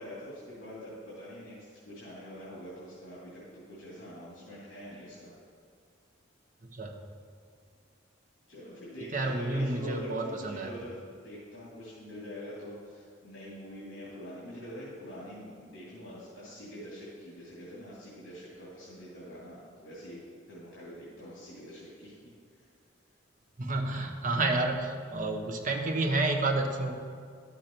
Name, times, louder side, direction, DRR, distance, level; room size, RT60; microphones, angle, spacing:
voice 1, 0.0-5.3 8.5-20.2 20.5-22.1 22.5-22.7, equal, 75° left, -8 dB, 2.5 m, -45 dB
voice 2, 9.1-10.7 23.6-26.9, right 2 dB, 45° right, 3 dB, 0.9 m, -30 dB
11.5 x 6.7 x 4.4 m, 2.2 s
head